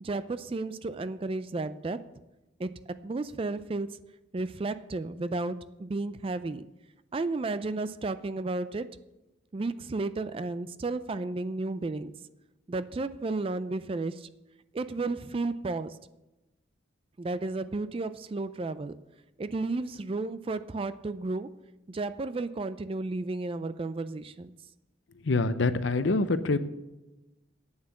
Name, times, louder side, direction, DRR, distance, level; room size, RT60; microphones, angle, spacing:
voice 1, 0.0-2.0 2.6-4.0 4.3-6.6 7.1-8.9 9.5-12.1 12.7-14.3 14.7-16.0 17.2-19.0 19.4-21.6 21.9-24.5, right 3 dB, 30° right, 13 dB, 0.3 m, -33 dB
voice 2, 25.2-26.6, left 3 dB, 70° left, 12 dB, 0.7 m, -25 dB
8.9 x 7.3 x 7.2 m, 1.0 s
head